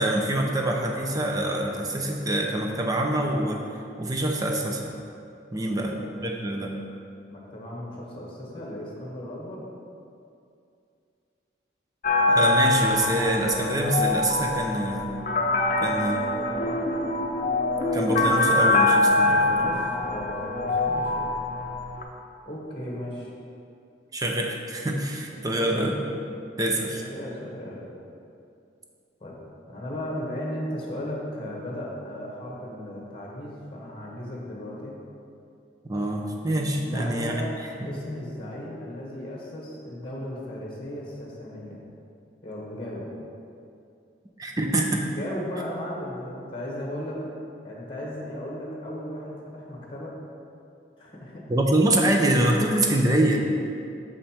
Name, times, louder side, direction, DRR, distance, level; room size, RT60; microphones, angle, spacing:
voice 1, 0.0-3.6 4.0-4.9 5.5-6.0 6.2-6.8 12.3-15.1 15.8-16.2 17.9-19.4 24.1-25.9 26.6-27.0 35.9-37.3 44.4-45.1 51.5-53.4, right 1 dB, 20° right, 1 dB, 0.6 m, -25 dB
voice 2, 7.3-9.6 15.7-17.2 19.2-21.3 22.4-23.3 25.4-26.0 26.9-27.8 29.2-29.4 29.7-35.0 36.8-41.8 42.4-43.1 45.2-47.3 47.6-50.1 51.0-51.4, left 1 dB, 30° left, -3 dB, 1.2 m, -36 dB
sound 1, 12.0-22.0, left 2 dB, 45° left, 0.7 m, -24 dB
6.5 x 5.5 x 4.3 m, 2.5 s
head